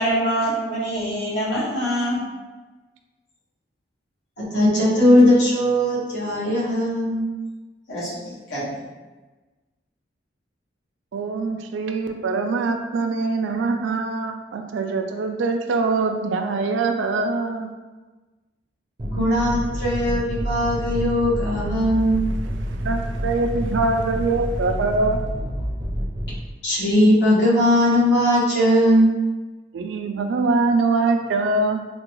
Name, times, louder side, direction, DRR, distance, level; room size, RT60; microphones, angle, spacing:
voice 1, 0.0-2.2 6.4-6.5 7.9-8.7, equal, 85° left, -10 dB, 1.4 m, -25 dB
voice 2, 4.4-7.2 19.1-22.2 26.6-29.1, left 1 dB, 65° left, -7 dB, 1.2 m, -19 dB
voice 3, 11.1-17.7 22.8-25.2 29.7-31.8, right 3 dB, 85° right, 5 dB, 0.4 m, -23 dB
sound 1, 19.0-26.4, equal, 30° right, 0.5 m, -28 dB
3.6 x 2.3 x 2.9 m, 1.2 s
head